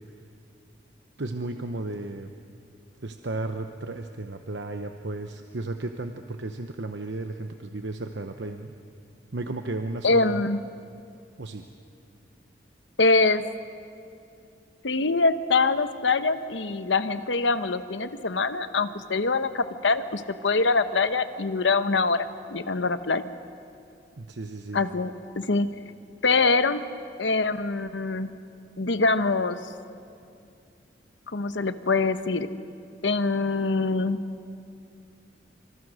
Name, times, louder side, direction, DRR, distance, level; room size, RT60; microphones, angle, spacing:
voice 1, 1.2-2.3 3.0-8.7 9.3-10.4 11.4-11.7 24.2-24.8, right 2 dB, 75° right, 6 dB, 0.9 m, -34 dB
voice 2, 10.0-10.6 13.0-13.4 14.8-23.3 24.7-25.7 26.2-26.8 27.2-28.3 28.8-29.6 31.3-32.5 33.0-34.2, left 3 dB, 85° left, 11 dB, 1.0 m, -24 dB
26.0 x 26.0 x 6.4 m, 2.5 s
head